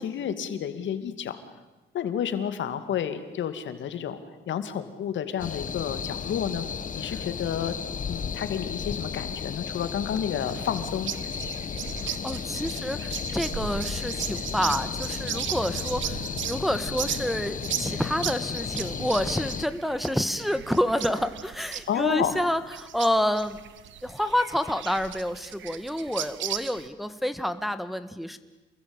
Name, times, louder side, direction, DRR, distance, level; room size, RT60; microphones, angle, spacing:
voice 1, 0.0-1.4 1.9-4.2 4.5-6.7 6.9-7.7 8.1-11.1 21.9-22.4, left 9 dB, 70° left, 10 dB, 2.5 m, -30 dB
sound 1, 5.4-19.7, left 6 dB, 40° left, 1.3 m, -34 dB
sound 2, 10.4-26.9, right 10 dB, 75° right, 1.4 m, -37 dB
voice 2, 12.2-23.6 24.0-28.4, equal, ahead, 10 dB, 1.5 m, -28 dB
28.0 x 21.0 x 9.0 m, 1.1 s
cardioid pair, 90°, 20 cm